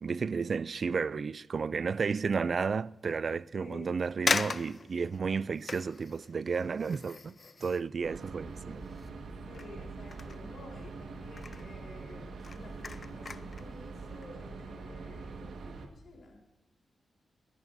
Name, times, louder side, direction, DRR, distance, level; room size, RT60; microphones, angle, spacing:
voice 1, 0.0-7.3 7.6-8.8, right 5 dB, 50° right, 0.3 m, -32 dB
sound 1, 1.9-2.3 2.8-2.9 3.7-3.8 4.3-9.2 9.5-11.0 11.3-11.7 12.2-13.7 14.1-14.3, left 4 dB, 45° left, 0.4 m, -38 dB
voice 2, 3.5-3.9 9.5-16.4, left 2 dB, 65° left, 4.0 m, -51 dB
sound 2, 8.0-15.9, right 4 dB, 80° right, 1.6 m, -44 dB
26.0 x 10.5 x 2.7 m
cardioid pair, 90°, 0 cm